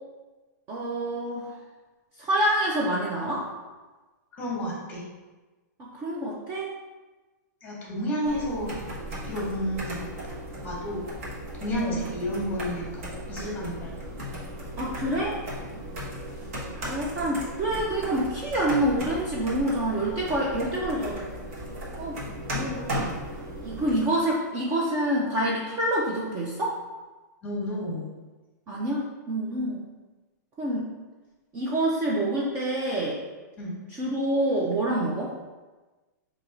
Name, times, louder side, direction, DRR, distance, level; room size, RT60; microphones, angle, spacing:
voice 1, 0.7-1.5 2.2-3.5 5.8-6.7 8.2-8.4 11.7-12.0 14.8-15.4 16.8-21.3 22.0-22.2 22.5-23.2 23.6-26.8 28.7-29.8 30.6-30.9 31.5-33.2 34.0-35.3, right 1 dB, 20° right, -4 dB, 0.5 m, -27 dB
voice 2, 4.3-5.0 7.6-8.7 9.2-10.1 10.6-11.0 11.5-13.9 15.8-15.9 27.4-28.1 33.6-33.8, equal, 15° left, -4 dB, 1.2 m, -31 dB
sound 1, 8.2-24.0, equal, 50° right, 1.2 m, -36 dB
4.5 x 2.8 x 3.8 m, 1.2 s
hypercardioid pair, 160°, 10 cm